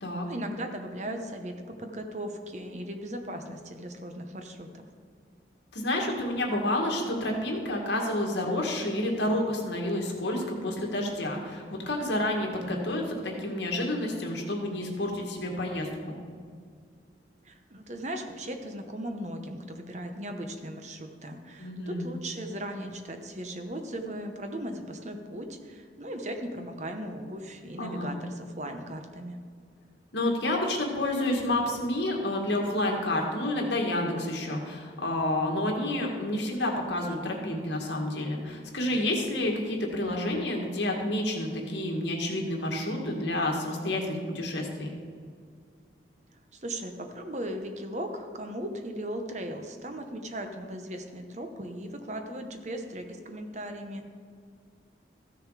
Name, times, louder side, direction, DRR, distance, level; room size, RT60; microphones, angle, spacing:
voice 1, 0.3-4.8 17.4-29.4 46.5-54.1, right 1 dB, 40° right, 5 dB, 0.9 m, -37 dB
voice 2, 5.7-16.2 21.6-22.1 27.8-28.1 30.1-44.9, left 1 dB, 70° left, 1 dB, 1.9 m, -29 dB
14.5 x 6.6 x 4.8 m, 2.1 s
head